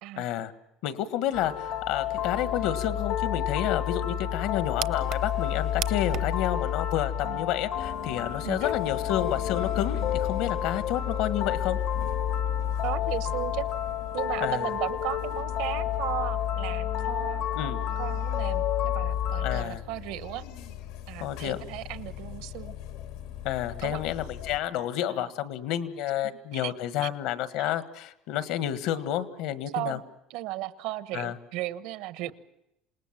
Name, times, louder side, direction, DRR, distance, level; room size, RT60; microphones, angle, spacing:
voice 1, 0.2-0.5 0.8-11.8 14.4-14.7 17.5-17.8 19.4-19.8 21.2-21.6 23.4-30.0 31.1-31.3, left 11 dB, 70° left, 11 dB, 1.5 m, -30 dB
sound 1, 1.3-19.6, left 10 dB, 50° left, 0.9 m, -30 dB
sound 2, 1.3-6.5, right 12 dB, 50° right, 0.8 m, -42 dB
sound 3, 7.7-24.6, left 10 dB, 85° left, 2.4 m, -43 dB
voice 2, 12.8-13.7 14.1-20.4 21.1-22.7 23.8-24.0 25.0-25.3 26.5-26.7 27.0-27.1 29.7-30.0 30.3-32.3, right 16 dB, 70° right, 13 dB, 1.1 m, -35 dB
27.5 x 19.0 x 7.5 m, 0.85 s
cardioid pair, 160°, 0 cm